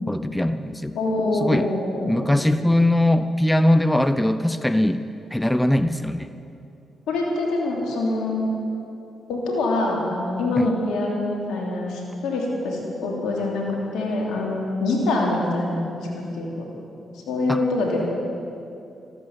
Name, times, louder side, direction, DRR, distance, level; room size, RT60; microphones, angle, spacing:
voice 1, 0.1-1.0 1.4-1.7 2.0-5.0 5.3-6.3 10.6-10.7 17.5-17.6, left 1 dB, 10° left, 10 dB, 0.7 m, -21 dB
voice 2, 0.9-2.2 7.1-8.6 9.3-16.6 17.3-18.0, left 2 dB, 80° left, -1 dB, 3.0 m, -25 dB
14.0 x 13.0 x 7.4 m, 2.7 s
supercardioid pair, 50°, 0 cm